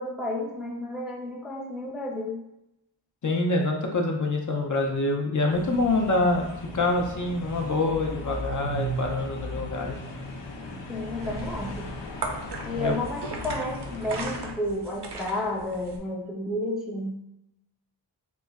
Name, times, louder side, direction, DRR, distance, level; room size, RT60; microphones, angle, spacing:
voice 1, 0.0-2.4 10.9-11.9 12.7-17.2, left 1 dB, ahead, 0 dB, 0.4 m, -31 dB
voice 2, 3.2-6.5 6.7-9.9 12.8-13.0, left 2 dB, 45° left, 1 dB, 0.6 m, -25 dB
sound 1, 5.5-14.5, equal, 85° left, 0.6 m, -37 dB
sound 2, 10.9-16.0, right 3 dB, 70° right, 0.6 m, -38 dB
3.0 x 2.2 x 3.5 m, 0.85 s
wide cardioid pair, 55°, 43 cm